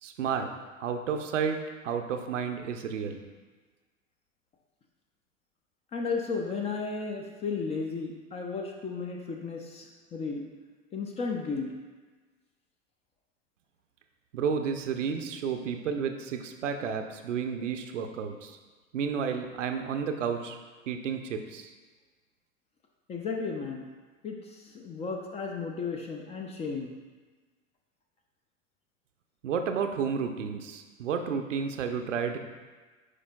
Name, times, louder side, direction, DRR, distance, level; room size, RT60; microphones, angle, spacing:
voice 1, 0.0-0.5 0.8-3.2 14.3-18.6 18.9-20.6 20.9-21.7 29.4-32.4, right 6 dB, 65° right, 6 dB, 0.7 m, -31 dB
voice 2, 5.9-10.4 10.9-11.7 23.1-23.9 24.2-26.9, left 4 dB, 15° left, 2 dB, 0.4 m, -34 dB
9.9 x 4.9 x 2.2 m, 1.3 s
figure-of-eight pair, 85°, 39 cm